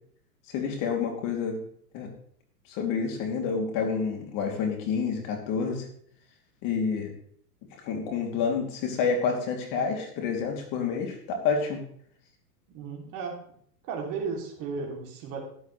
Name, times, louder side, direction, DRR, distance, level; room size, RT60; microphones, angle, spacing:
voice 1, 0.5-1.6 1.9-2.1 2.7-5.8 6.6-7.1 7.8-11.8, left 5 dB, 40° left, 3 dB, 2.8 m, -28 dB
voice 2, 12.7-13.4 13.8-15.4, right 5 dB, 40° right, 1 dB, 2.9 m, -34 dB
12.5 x 10.5 x 3.2 m, 0.63 s
hypercardioid pair, 120°, 49 cm